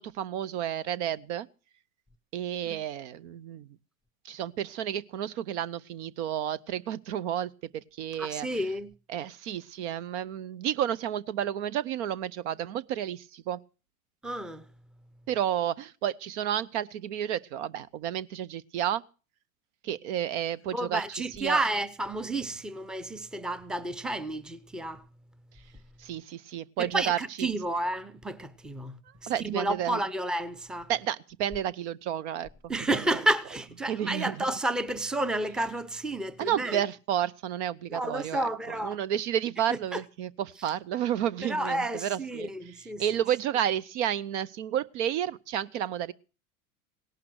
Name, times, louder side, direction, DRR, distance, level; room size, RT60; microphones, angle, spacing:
voice 1, 0.0-1.5 2.3-3.7 4.2-7.5 8.0-8.5 9.1-13.6 15.3-19.0 19.8-21.0 21.4-21.6 26.0-27.2 29.3-30.0 30.9-33.0 33.9-34.4 36.4-38.5 38.8-42.5 43.0-46.1, right 10 dB, 50° right, 0.7 m, -31 dB
voice 2, 8.2-8.9 14.2-14.6 20.7-25.0 26.8-30.9 32.7-36.8 37.9-39.0 39.9-40.0 41.4-43.0, right 1 dB, ahead, 0.7 m, -31 dB
17.5 x 11.5 x 6.3 m
figure-of-eight pair, 90°, 44 cm